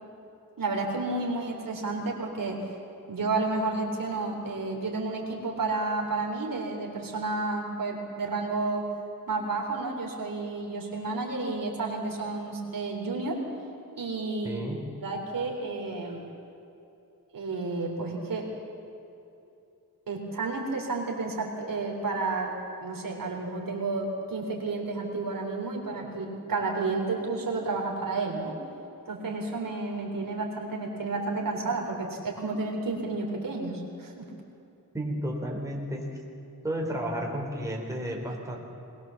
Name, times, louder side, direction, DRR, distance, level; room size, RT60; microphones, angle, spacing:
voice 1, 0.6-2.6 3.1-8.9 9.3-13.4 14.0-14.6 15.0-16.2 17.3-18.5 20.1-22.5 22.8-28.6 29.1-34.2, right 3 dB, 70° right, 0 dB, 3.5 m, -31 dB
voice 2, 14.4-14.8 34.9-36.1 36.6-38.6, right 1 dB, 10° right, -1 dB, 3.7 m, -32 dB
21.0 x 20.5 x 7.2 m, 2.8 s
wide cardioid pair, 115°, 35 cm